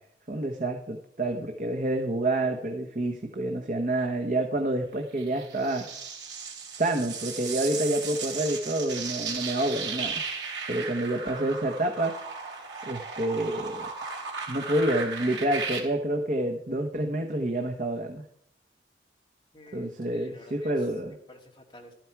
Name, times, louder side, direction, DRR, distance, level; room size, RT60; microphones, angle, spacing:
voice 1, 0.3-5.9 6.7-10.2 10.7-12.1 12.8-13.9 14.5-18.2 19.7-21.1, right 1 dB, 40° right, 2 dB, 1.0 m, -28 dB
sound 1, 5.2-15.8, right 5 dB, 75° right, 3.1 m, -36 dB
voice 2, 19.5-21.9, left 1 dB, 25° left, 0 dB, 2.0 m, -51 dB
13.0 x 9.2 x 4.6 m, 0.72 s
head